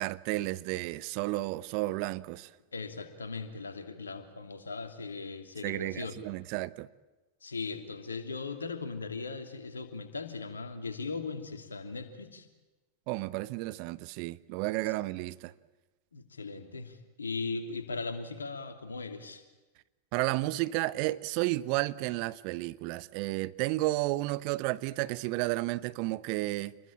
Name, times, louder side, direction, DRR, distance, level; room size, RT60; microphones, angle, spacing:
voice 1, 0.0-2.5 5.6-6.9 13.1-15.5 20.1-26.7, right 19 dB, 45° right, 0.9 m, -32 dB
voice 2, 2.7-6.2 7.4-12.5 16.1-19.4, left 4 dB, 75° left, 2.9 m, -38 dB
27.5 x 22.0 x 8.9 m
figure-of-eight pair, 90°, 0 cm